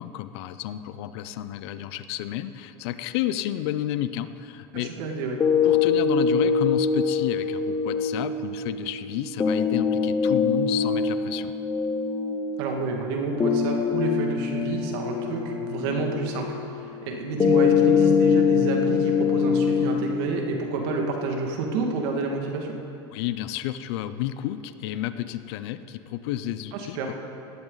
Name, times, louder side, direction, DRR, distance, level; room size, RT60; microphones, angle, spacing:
voice 1, 0.0-4.9 5.6-11.5 23.1-27.1, left 12 dB, 70° left, 12 dB, 0.6 m, -31 dB
voice 2, 4.7-5.4 12.6-16.6 17.1-22.8 26.7-27.1, right 3 dB, 70° right, 1 dB, 2.2 m, -29 dB
sound 1, 5.4-21.4, left 6 dB, 20° left, 0.8 m, -24 dB
18.0 x 12.0 x 4.0 m, 2.7 s
supercardioid pair, 125°, 14 cm